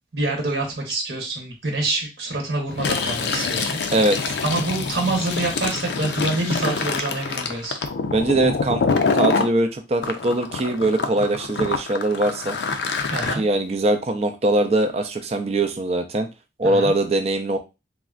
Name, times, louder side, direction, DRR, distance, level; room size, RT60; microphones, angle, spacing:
voice 1, 0.1-3.8 4.4-7.8 13.1-13.4 16.6-16.9, right 2 dB, 70° right, 0 dB, 0.9 m, -26 dB
Fill (with liquid), 2.7-9.5 10.0-13.3, left 4 dB, 75° left, 0.4 m, -25 dB
voice 2, 8.1-8.8 9.1-12.6 13.4-16.3 16.6-17.6, right 2 dB, 35° right, 6 dB, 0.4 m, -21 dB
3.6 x 2.1 x 2.4 m, 0.26 s
head